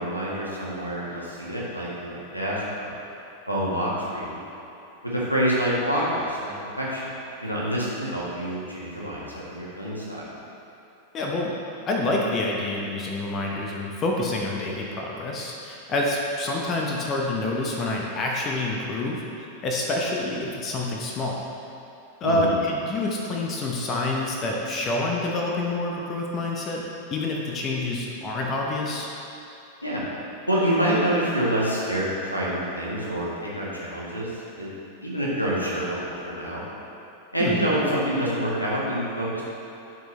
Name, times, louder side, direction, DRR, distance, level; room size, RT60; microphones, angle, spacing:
voice 1, 0.0-2.9 3.5-4.4 5.0-7.0 7.4-10.2 22.2-22.6 29.8-30.0 30.5-34.7 35.0-36.6 37.3-39.4, right 1 dB, 85° left, -6 dB, 1.5 m, -27 dB
voice 2, 11.1-11.6 11.9-19.2 19.6-21.5 22.2-26.8 27.1-29.1 37.4-37.6, left 2 dB, 30° left, -1 dB, 0.9 m, -27 dB
12.0 x 4.6 x 3.2 m, 2.9 s
figure-of-eight pair, 90°, 0 cm